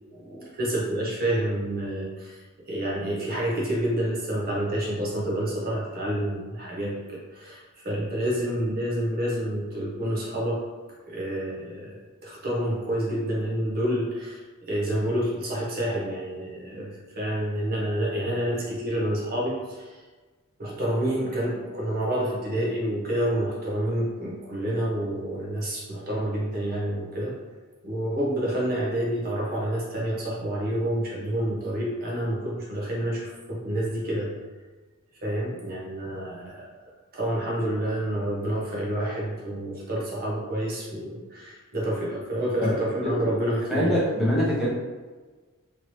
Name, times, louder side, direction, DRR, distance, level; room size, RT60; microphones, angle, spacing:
voice 1, 0.1-10.6 11.1-20.0 20.6-27.3 27.8-34.3 35.2-36.7 37.1-44.0, right 1 dB, 45° right, -5 dB, 0.8 m, -28 dB
voice 2, 43.7-44.7, equal, ahead, -9 dB, 0.9 m, -23 dB
3.1 x 2.8 x 3.0 m, 1.3 s
head